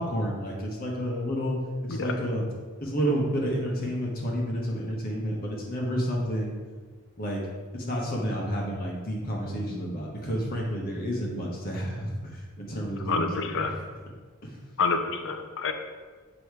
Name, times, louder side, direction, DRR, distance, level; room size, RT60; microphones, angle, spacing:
voice 1, 0.0-1.6 1.8-2.4 2.8-6.6 7.2-7.4 7.7-13.7 14.4-14.6, equal, 40° left, -2 dB, 1.1 m, -30 dB
voice 2, 13.1-13.7 14.8-15.7, left 4 dB, 60° left, 6 dB, 0.6 m, -28 dB
8.4 x 3.1 x 4.7 m, 1.5 s
head